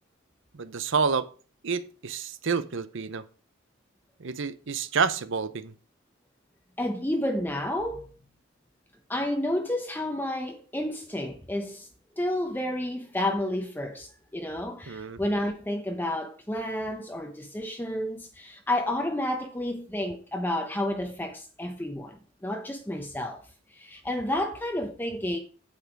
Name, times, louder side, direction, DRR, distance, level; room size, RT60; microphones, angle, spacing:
voice 1, 0.5-1.3 1.6-3.2 4.2-5.7 14.9-15.2, right 5 dB, 70° right, 0.8 m, -29 dB
voice 2, 6.8-8.1 9.1-11.9 12.2-23.4 23.7-25.4, left 1 dB, 10° left, 0.8 m, -30 dB
8.7 x 8.1 x 4.6 m
head